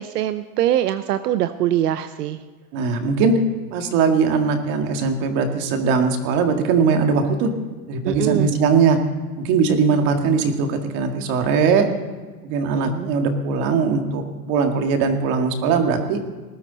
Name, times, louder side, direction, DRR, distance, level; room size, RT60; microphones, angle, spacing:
voice 1, 0.0-2.4 8.0-8.5 12.7-13.1, right 12 dB, 80° right, 11 dB, 0.8 m, -23 dB
voice 2, 2.7-3.3 3.7-7.5 7.9-9.0 9.4-11.9 12.4-16.2, right 5 dB, 40° right, 5 dB, 1.9 m, -20 dB
19.5 x 12.5 x 4.1 m, 1.4 s
supercardioid pair, 150°, 47 cm